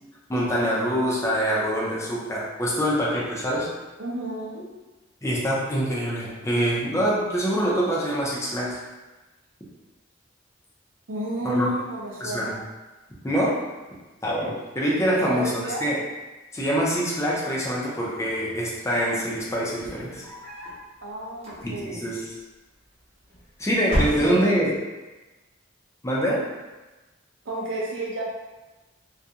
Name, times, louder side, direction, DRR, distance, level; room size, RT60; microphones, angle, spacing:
voice 1, 0.3-3.7 5.2-8.8 11.4-11.7 12.2-12.6 13.2-13.6 14.2-16.0 16.5-20.3 21.6-22.2 23.6-24.7 26.0-26.4, equal, 15° left, -5 dB, 0.4 m, -25 dB
voice 2, 4.0-4.7 11.1-12.6 15.2-15.9 21.0-22.1 23.9-24.5 27.5-28.2, right 1 dB, 80° right, -4 dB, 0.6 m, -32 dB
sound 1, 19.7-20.9 21.3-22.0 23.0-23.5 23.8-24.7, equal, 35° right, 0.9 m, -30 dB
2.4 x 2.2 x 2.7 m, 1.1 s
head